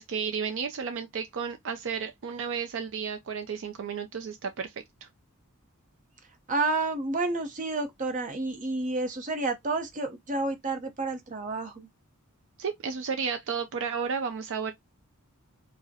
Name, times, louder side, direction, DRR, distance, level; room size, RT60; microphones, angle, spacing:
voice 1, 0.0-4.7 5.0-5.1 12.6-14.7, right 6 dB, 60° right, 0.5 m, -32 dB
voice 2, 6.5-11.9, right 3 dB, 35° right, 0.8 m, -30 dB
4.6 x 2.1 x 2.7 m
head